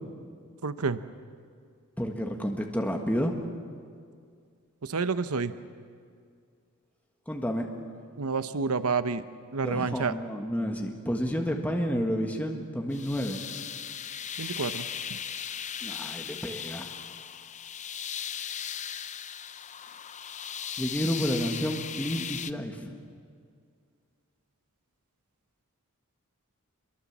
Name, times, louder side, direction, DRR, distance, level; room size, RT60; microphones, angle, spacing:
voice 1, 0.6-1.0 4.8-5.5 8.2-9.2 9.5-10.1 14.4-14.9, right 4 dB, 80° right, 12 dB, 0.9 m, -29 dB
voice 2, 2.0-3.3 7.3-7.7 9.6-13.4 15.8-16.9 20.8-22.9, equal, 5° left, 2 dB, 1.6 m, -30 dB
sound 1, 12.9-22.5, left 8 dB, 35° left, 0.7 m, -37 dB
27.0 x 22.5 x 7.3 m, 2.2 s
head